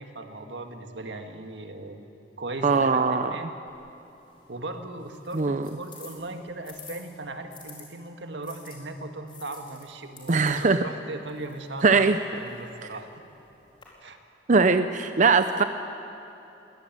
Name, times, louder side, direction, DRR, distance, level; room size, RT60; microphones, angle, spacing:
voice 1, 0.0-2.1 2.4-3.5 4.5-13.1 14.0-14.2, right 2 dB, 90° right, 5 dB, 1.9 m, -38 dB
voice 2, 2.6-3.3 5.3-5.7 10.3-10.8 11.8-12.2 14.5-15.6, right 4 dB, 45° right, 9 dB, 0.6 m, -21 dB
sound 1, 3.7-7.8 8.4-13.8, left 5 dB, 30° left, 4.7 m, -51 dB
22.0 x 18.5 x 9.2 m, 3.0 s
head